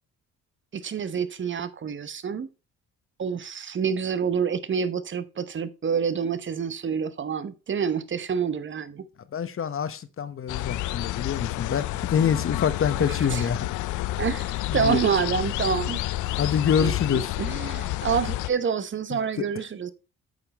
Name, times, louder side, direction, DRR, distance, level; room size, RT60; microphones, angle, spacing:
voice 1, 0.7-2.5 3.2-9.0 13.1-13.5 14.2-16.4 16.8-19.9, right 7 dB, 40° right, 1.0 m, -28 dB
voice 2, 9.3-13.7 14.7-15.0 16.4-17.4 19.1-19.2, left 7 dB, 45° left, 1.1 m, -26 dB
sound 1, 10.5-18.5, left 17 dB, 80° left, 0.5 m, -29 dB
8.7 x 5.7 x 4.1 m
cardioid pair, 90°, 30 cm